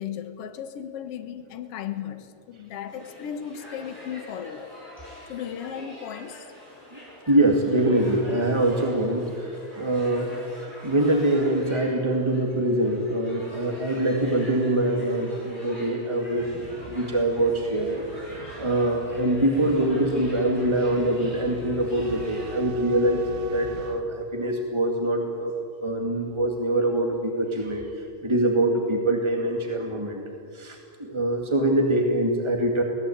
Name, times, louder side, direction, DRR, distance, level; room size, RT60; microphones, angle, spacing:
voice 1, 0.0-4.7 5.3-6.5, left 9 dB, 70° left, 9 dB, 1.4 m, -36 dB
sound 1, 2.9-22.6, equal, 10° left, 7.7 m, -45 dB
voice 2, 7.3-10.3 10.8-18.0 18.6-25.5 25.8-27.9 28.2-30.2 30.5-32.8, right 1 dB, 15° right, 2 dB, 0.9 m, -24 dB
sound 2, 16.3-24.0, right 7 dB, 80° right, 3.4 m, -43 dB
24.5 x 18.0 x 8.7 m, 2.3 s
omnidirectional pair, 4.4 m